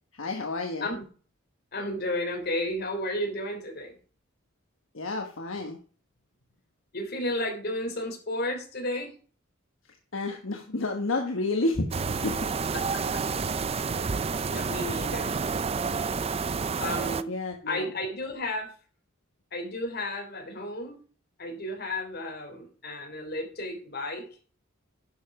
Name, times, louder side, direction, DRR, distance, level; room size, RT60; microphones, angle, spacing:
voice 1, 0.2-0.9 4.9-5.8 10.1-12.5 17.3-17.9, left 2 dB, 70° left, 3 dB, 1.3 m, -30 dB
voice 2, 1.7-4.0 6.9-9.1 12.7-13.2 13.8-14.1 14.5-15.3 16.8-17.3 17.7-18.7 19.5-21.0 21.4-24.2, left 1 dB, 50° left, 3 dB, 3.3 m, -33 dB
sound 1, 11.9-17.2, right 5 dB, 30° right, 0.5 m, -29 dB
11.0 x 6.9 x 4.9 m, 0.40 s
head